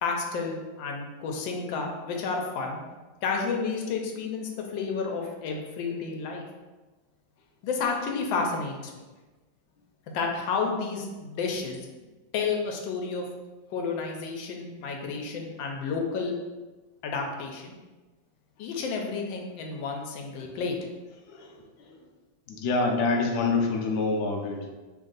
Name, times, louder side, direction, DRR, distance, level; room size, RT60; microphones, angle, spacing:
voice 1, 0.0-2.8 3.2-6.4 7.6-9.0 10.1-11.8 12.3-13.2 13.7-16.3 17.0-17.8 18.6-20.8, left 4 dB, 85° left, 2 dB, 1.3 m, -31 dB
voice 2, 22.5-24.7, left 3 dB, 70° left, 1 dB, 1.0 m, -26 dB
3.4 x 2.6 x 3.9 m, 1.2 s
omnidirectional pair, 2.0 m